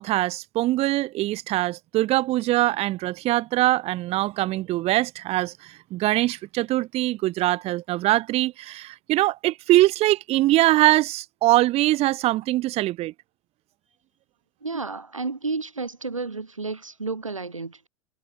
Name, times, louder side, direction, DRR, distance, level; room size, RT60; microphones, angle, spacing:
voice 1, 0.0-13.1, right 17 dB, 40° right, 2.2 m, -22 dB
voice 2, 14.6-17.9, right 3 dB, 90° right, 2.0 m, -31 dB
figure-of-eight pair, 90°, 16 cm